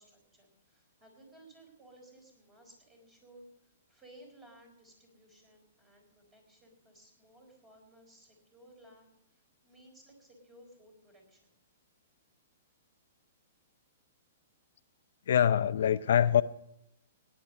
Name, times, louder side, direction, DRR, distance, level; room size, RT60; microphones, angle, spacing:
voice 1, 0.0-11.5, right 1 dB, 15° right, 4.2 m, -58 dB
voice 2, 15.3-16.4, left 9 dB, 70° left, 0.5 m, -24 dB
18.0 x 10.0 x 5.3 m
hypercardioid pair, 160°, 0 cm